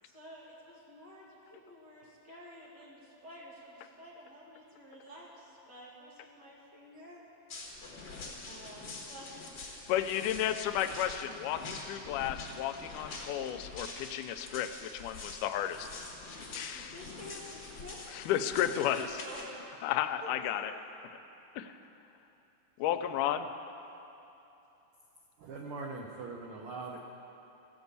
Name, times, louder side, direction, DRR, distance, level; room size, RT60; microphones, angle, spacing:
voice 1, 0.0-7.2 8.4-10.2 16.7-18.0 18.3-19.9 20.2-20.8, left 1 dB, 40° right, -5 dB, 2.1 m, -50 dB
sound 1, 7.5-19.4, left 3 dB, 45° left, 1.6 m, -45 dB
voice 2, 9.9-15.9 16.4-17.0 18.1-19.1 19.8-20.7 21.6-21.8 22.8-23.5, left 11 dB, 85° left, 9 dB, 2.1 m, -33 dB
voice 3, 25.4-27.0, right 3 dB, 85° right, -1 dB, 1.2 m, -41 dB
16.0 x 5.3 x 8.2 m, 3.0 s
omnidirectional pair, 3.6 m